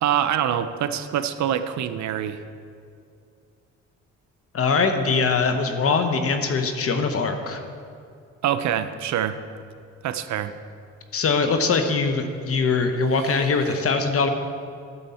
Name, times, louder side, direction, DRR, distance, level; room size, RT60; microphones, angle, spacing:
voice 1, 0.0-2.4 8.4-9.4 10.0-10.5, right 10 dB, 70° right, 11 dB, 0.6 m, -25 dB
voice 2, 4.5-7.6 11.1-14.3, left 4 dB, 50° left, 6 dB, 1.0 m, -22 dB
12.0 x 7.0 x 4.2 m, 2.4 s
cardioid pair, 90°, 30 cm